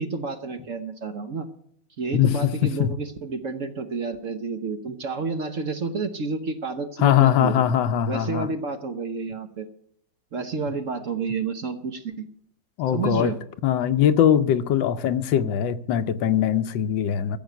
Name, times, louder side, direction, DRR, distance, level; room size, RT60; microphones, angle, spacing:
voice 1, 0.0-1.5 2.0-7.6 8.1-9.7 10.3-12.3 12.9-13.4 15.4-15.5, right 4 dB, 50° right, 1.1 m, -30 dB
voice 2, 2.1-2.9 7.0-8.5 12.8-13.3 13.6-17.4, left 10 dB, 75° left, 1.4 m, -21 dB
14.0 x 7.1 x 9.1 m
omnidirectional pair, 2.1 m